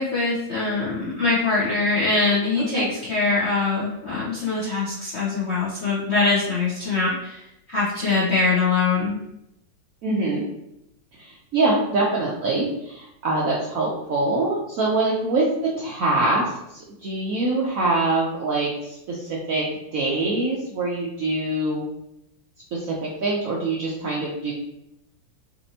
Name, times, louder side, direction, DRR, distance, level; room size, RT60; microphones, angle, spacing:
voice 1, 0.0-9.2, left 3 dB, 55° left, -8 dB, 0.7 m, -23 dB
voice 2, 2.6-2.9 10.0-10.4 11.2-19.6 19.9-21.8 22.7-24.5, right 2 dB, 70° right, -4 dB, 0.8 m, -24 dB
4.2 x 2.5 x 2.7 m, 0.83 s
omnidirectional pair, 2.1 m